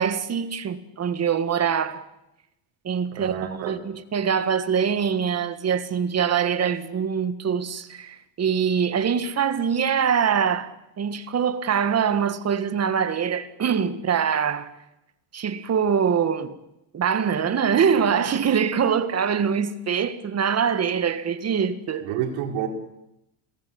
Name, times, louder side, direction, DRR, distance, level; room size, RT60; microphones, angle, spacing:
voice 1, 0.0-2.0 2.8-14.7 15.3-16.6 16.9-22.1, right 7 dB, 30° right, 1.7 m, -24 dB
voice 2, 3.1-3.7 22.0-22.7, right 10 dB, 80° right, 5.0 m, -29 dB
28.5 x 17.5 x 8.7 m
cardioid pair, 140°, 50 cm